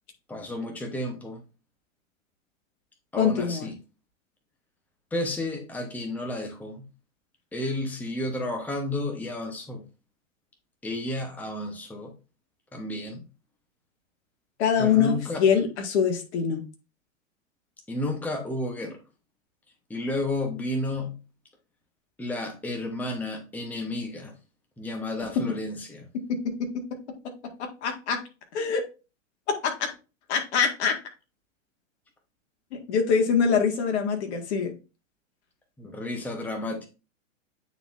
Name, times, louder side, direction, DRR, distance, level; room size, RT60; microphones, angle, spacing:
voice 1, 0.3-1.4 3.1-3.7 5.1-6.8 7.5-9.8 10.8-12.1 12.7-13.2 14.8-15.4 17.9-19.0 19.9-21.2 22.2-24.3 24.8-26.1 35.8-36.9, left 1 dB, 5° left, 1.0 m, -32 dB
voice 2, 3.2-3.7 14.6-16.6 26.3-26.8 27.6-28.2 28.5-28.8 29.5-29.9 30.3-31.0 32.7-34.7, left 6 dB, 55° left, 1.8 m, -24 dB
8.9 x 4.1 x 2.6 m
hypercardioid pair, 110°, 40 cm